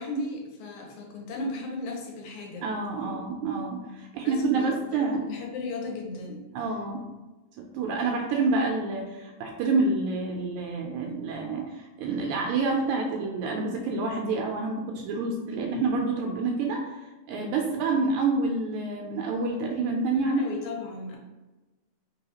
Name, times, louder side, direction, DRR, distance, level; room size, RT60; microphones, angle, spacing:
voice 1, 0.0-2.7 3.0-3.3 4.2-6.4 20.2-21.2, left 2 dB, 75° left, 0 dB, 2.2 m, -35 dB
voice 2, 2.6-5.2 6.5-7.0 7.7-17.0 17.3-20.4, right 3 dB, 80° right, 1 dB, 1.9 m, -28 dB
4.7 x 3.5 x 2.8 m, 1.2 s
omnidirectional pair, 3.5 m